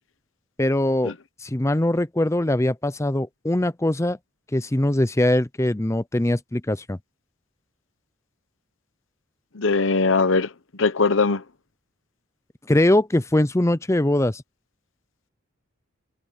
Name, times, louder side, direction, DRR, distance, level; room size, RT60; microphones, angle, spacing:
voice 1, 0.6-1.1 1.4-4.2 4.5-7.0 12.7-14.4, left 1 dB, 15° left, 0.6 m, -22 dB
voice 2, 9.5-10.5 10.8-11.4, left 4 dB, 65° left, 1.0 m, -20 dB
head